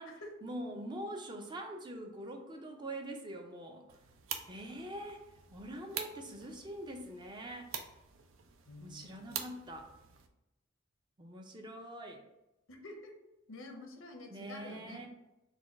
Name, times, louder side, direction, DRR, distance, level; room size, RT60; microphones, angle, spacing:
voice 1, 0.4-4.0 4.5-5.2 5.5-7.7 8.8-9.9 11.2-12.2 14.3-15.1, right 1 dB, 25° right, 3 dB, 0.5 m, -44 dB
sound 1, 3.9-10.3, right 7 dB, 75° right, 0.5 m, -46 dB
voice 2, 8.7-9.4 12.7-13.2 13.5-15.0, left 2 dB, 85° left, 3 dB, 0.8 m, -49 dB
4.1 x 2.3 x 4.5 m, 0.93 s
head